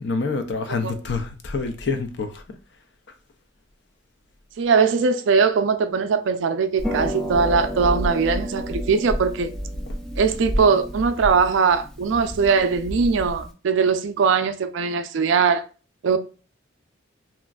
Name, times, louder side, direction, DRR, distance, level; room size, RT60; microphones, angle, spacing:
voice 1, 0.0-2.6 3.1-3.2 9.9-10.0, left 4 dB, 60° left, 0.5 m, -27 dB
voice 2, 4.6-9.5 10.2-15.6 16.0-16.2, right 5 dB, 70° right, 0.4 m, -20 dB
Harp, 6.8-13.5, equal, ahead, 0.4 m, -30 dB
3.0 x 2.4 x 2.2 m
head